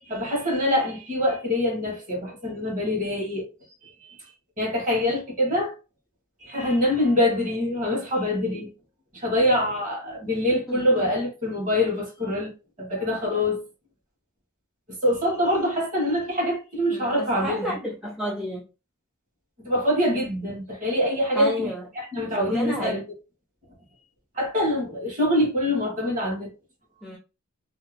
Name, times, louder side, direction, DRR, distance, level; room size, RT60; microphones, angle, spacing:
voice 1, 0.0-3.5 3.8-4.2 4.6-5.7 6.4-8.7 9.1-12.5 12.8-13.6 14.9-17.8 19.6-21.7 22.0-23.0 24.3-26.5, left 1 dB, 35° right, 1.3 m, -25 dB
voice 2, 10.7-11.1 16.9-18.7 21.3-21.9 22.4-22.9 27.0-27.2, left 1 dB, ahead, 0.5 m, -31 dB
2.7 x 2.2 x 3.2 m
head